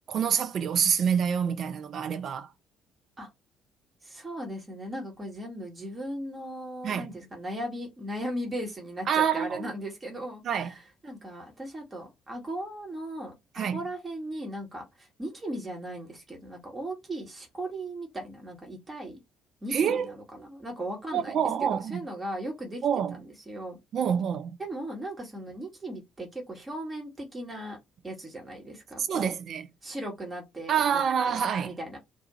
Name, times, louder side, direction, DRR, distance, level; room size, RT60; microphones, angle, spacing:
voice 1, 0.1-2.5 6.8-7.1 9.1-9.6 10.4-10.7 13.6-13.8 19.7-20.1 21.1-22.0 22.8-23.2 23.9-24.6 29.0-29.7 30.7-31.7, right 7 dB, 50° right, 0.4 m, -27 dB
voice 2, 4.0-19.2 19.6-22.8 23.1-23.8 24.6-27.8 28.0-29.3 29.8-32.0, right 1 dB, 20° right, 1.1 m, -38 dB
2.5 x 2.3 x 2.9 m
figure-of-eight pair, 45°, 0 cm